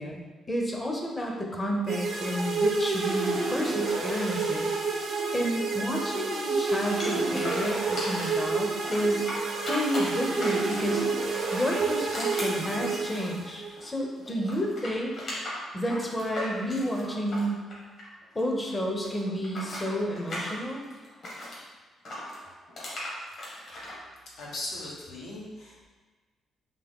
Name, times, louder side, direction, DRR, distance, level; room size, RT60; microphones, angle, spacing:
voice 1, 0.0-4.7 5.3-9.3 9.7-11.1 11.5-15.1 15.7-17.7 18.3-20.8, equal, 20° left, 0 dB, 0.7 m, -30 dB
sound 1, 1.9-13.7, right 4 dB, 75° right, 0.6 m, -29 dB
sound 2, 7.0-8.4 8.8-11.0 11.4-14.0 14.2-18.4 18.7-21.6 22.0-23.9, left 1 dB, 55° left, 1.3 m, -37 dB
voice 2, 24.4-25.8, left 1 dB, 85° left, -5 dB, 1.0 m, -38 dB
3.6 x 2.6 x 3.5 m, 1.3 s
cardioid pair, 100°, 0 cm